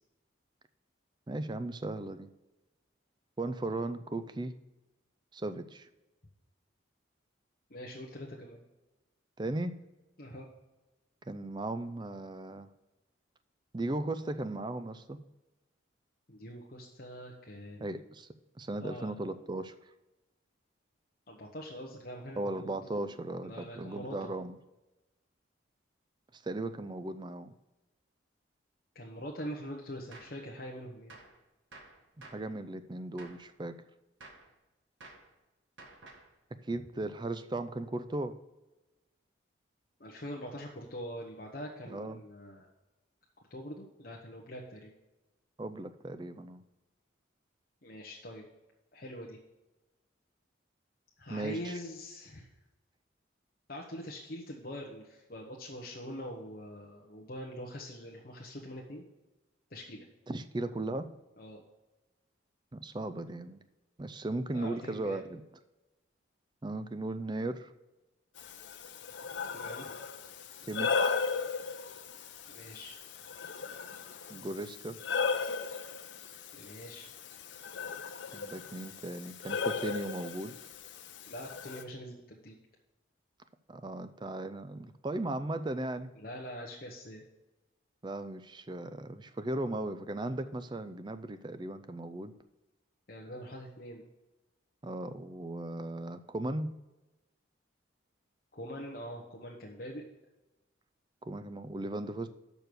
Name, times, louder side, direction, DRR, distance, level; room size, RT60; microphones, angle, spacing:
voice 1, 1.3-2.3 3.4-4.5 5.3-5.9 9.4-9.8 11.3-12.7 13.7-15.2 17.8-18.3 18.6-19.7 22.4-24.6 26.3-27.5 32.2-33.8 36.6-38.4 41.9-42.2 45.6-46.6 51.3-51.7 60.3-61.1 62.7-63.6 64.0-65.4 66.6-67.7 70.7-71.2 74.3-75.0 78.3-80.5 83.7-86.1 88.0-92.3 94.8-96.7 101.3-102.3, right 2 dB, 25° right, 11 dB, 0.4 m, -37 dB
voice 2, 7.7-8.6 10.2-10.5 16.3-18.0 18.8-19.1 21.3-22.7 23.4-24.3 28.9-31.2 40.0-42.7 43.5-44.9 47.8-48.4 48.9-49.4 51.2-52.5 53.7-59.0 59.7-60.1 61.4-61.6 64.5-65.2 69.5-69.9 72.5-72.9 76.5-77.1 81.3-82.6 86.2-87.2 93.1-94.1 98.5-100.0, equal, 50° left, -2 dB, 1.0 m, -43 dB
Gunshot gunfire, 30.1-30.4 31.1-31.4 31.7-32.5 33.2-33.5 34.2-34.5 35.0-35.3 35.8-36.3, right 2 dB, 75° right, 1.6 m, -52 dB
Breathing, 68.4-81.8, left 5 dB, 65° left, 0.7 m, -37 dB
6.8 x 6.1 x 6.7 m, 1.0 s
head